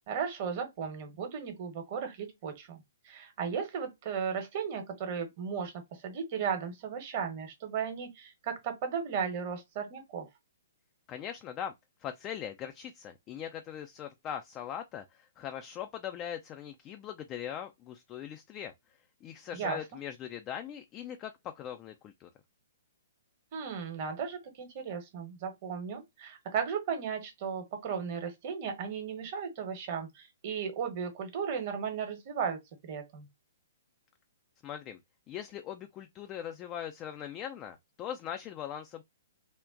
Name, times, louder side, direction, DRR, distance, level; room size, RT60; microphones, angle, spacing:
voice 1, 0.1-10.3 19.5-19.8 23.5-33.3, right 6 dB, 40° right, 1.0 m, -35 dB
voice 2, 11.1-11.7 12.0-18.7 19.2-22.3 34.6-35.0 35.3-39.0, left 9 dB, 25° left, 0.3 m, -40 dB
3.5 x 2.1 x 2.4 m
figure-of-eight pair, 120°, 0 cm